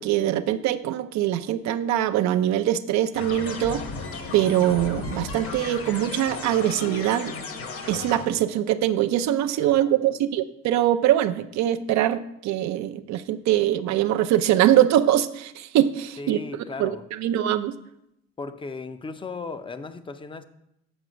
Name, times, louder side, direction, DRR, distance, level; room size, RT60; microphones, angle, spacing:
voice 1, 0.0-3.9 4.3-7.3 7.9-16.4 16.8-17.8, right 12 dB, 70° right, 9 dB, 0.5 m, -23 dB
sound 1, 3.1-8.3, left 4 dB, 50° left, 1.3 m, -35 dB
voice 2, 9.6-10.0 16.2-17.0 18.4-20.4, left 4 dB, 15° left, 11 dB, 0.5 m, -36 dB
8.0 x 4.8 x 6.2 m, 0.81 s
cardioid pair, 110°, 29 cm